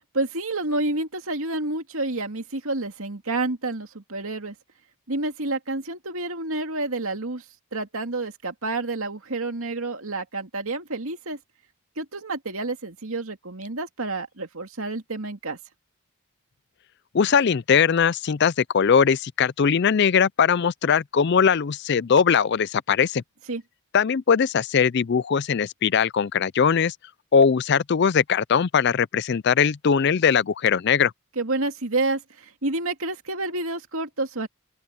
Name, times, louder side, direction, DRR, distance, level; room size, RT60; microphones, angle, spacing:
voice 1, 0.1-4.5 5.1-7.4 7.7-11.4 12.0-15.6 23.5-23.6 31.4-34.5, right 2 dB, 70° right, 2.4 m, -29 dB
voice 2, 17.1-23.2 23.9-26.9 27.3-31.1, left 6 dB, 50° left, 0.4 m, -20 dB
open air
head